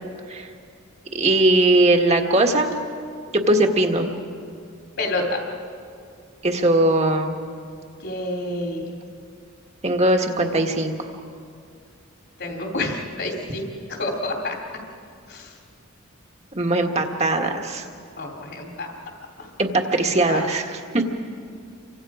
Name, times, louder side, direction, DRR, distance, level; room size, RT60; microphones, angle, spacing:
voice 1, 1.1-2.7 3.3-4.1 6.4-7.3 9.8-11.0 16.5-17.8 19.6-21.0, right 2 dB, 30° right, 3 dB, 1.7 m, -20 dB
voice 2, 5.0-5.4 8.0-8.9 12.4-13.6 13.9-14.5 15.3-15.5 18.2-18.9 19.4-19.5 20.3-20.5, left 2 dB, 60° left, 0 dB, 3.0 m, -28 dB
29.0 x 24.5 x 5.0 m, 2.3 s
head